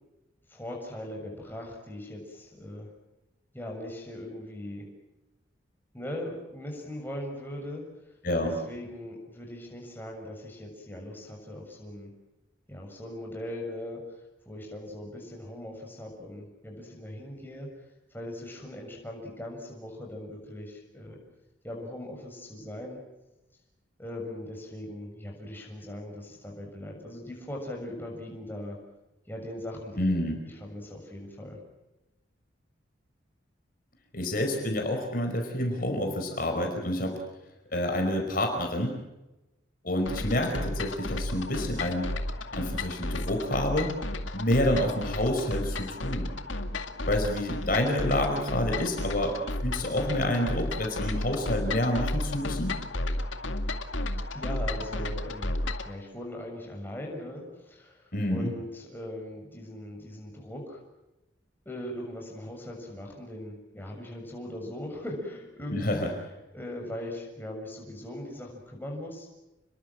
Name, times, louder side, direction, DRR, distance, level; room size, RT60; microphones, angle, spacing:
voice 1, 0.5-2.9 3.5-4.9 5.9-7.8 8.4-12.1 12.7-14.0 14.4-17.7 18.1-21.2 21.6-23.0 24.0-28.8 29.3-30.1 30.4-31.6 54.3-60.8 61.6-66.1 66.5-69.3, left 1 dB, 10° left, 0 dB, 6.9 m, -40 dB
voice 2, 8.2-8.6 30.0-30.4 34.1-37.2 37.7-39.0 39.8-42.1 42.5-43.9 44.3-46.3 47.1-52.8 58.1-58.5 65.7-66.1, left 1 dB, 45° left, 3 dB, 5.1 m, -28 dB
sound 1, 40.1-55.9, left 1 dB, 80° left, 2.3 m, -33 dB
30.0 x 22.0 x 7.7 m, 0.99 s
head